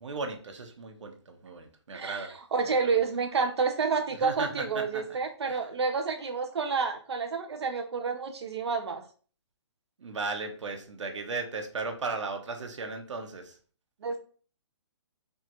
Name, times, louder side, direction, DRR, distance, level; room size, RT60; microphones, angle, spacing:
voice 1, 0.0-2.3 2.8-2.9 4.2-4.5 4.9-5.0 5.4-5.6 10.0-13.5, right 3 dB, 85° right, 4 dB, 1.1 m, -36 dB
voice 2, 1.9-9.0 14.0-14.2, right 5 dB, 60° right, 5 dB, 0.6 m, -29 dB
3.6 x 2.4 x 4.2 m, 0.41 s
hypercardioid pair, 180°, 15 cm